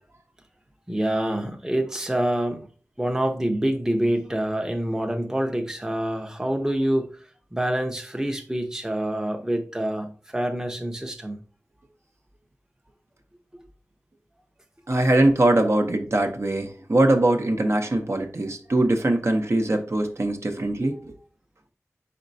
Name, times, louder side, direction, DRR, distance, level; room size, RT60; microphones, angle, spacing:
voice 1, 0.9-2.7 3.0-7.2 7.5-11.4, right 1 dB, 10° right, 0.7 m, -26 dB
voice 2, 14.9-21.1, right 1 dB, 55° right, 0.7 m, -22 dB
4.3 x 4.1 x 2.6 m
wide cardioid pair, 45°, 6 cm